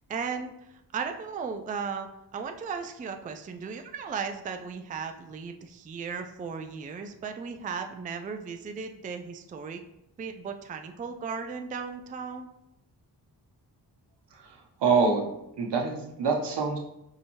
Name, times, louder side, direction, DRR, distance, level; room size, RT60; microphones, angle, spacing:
voice 1, 0.1-0.5 0.9-9.8 10.2-12.5, right 5 dB, 20° right, 6 dB, 0.3 m, -36 dB
voice 2, 14.3-15.2 15.6-16.8, right 4 dB, 75° right, 1 dB, 0.8 m, -26 dB
4.9 x 2.6 x 2.8 m, 0.84 s
cardioid pair, 50°, 42 cm